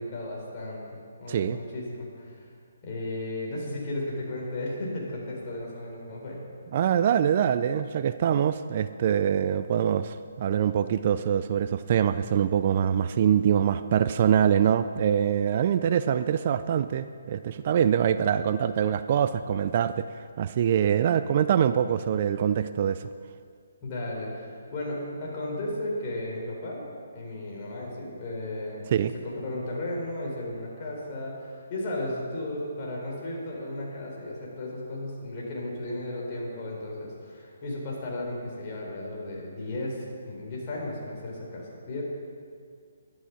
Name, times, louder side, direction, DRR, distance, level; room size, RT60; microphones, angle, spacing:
voice 1, 0.0-2.4 2.8-6.4 23.8-26.8 27.1-28.8 29.2-42.0, left 1 dB, 35° left, -3 dB, 4.0 m, -34 dB
voice 2, 1.3-1.6 6.7-23.1 28.9-29.1, right 9 dB, 40° right, 12 dB, 0.4 m, -24 dB
12.5 x 11.5 x 6.0 m, 2.2 s
hypercardioid pair, 155°, 0 cm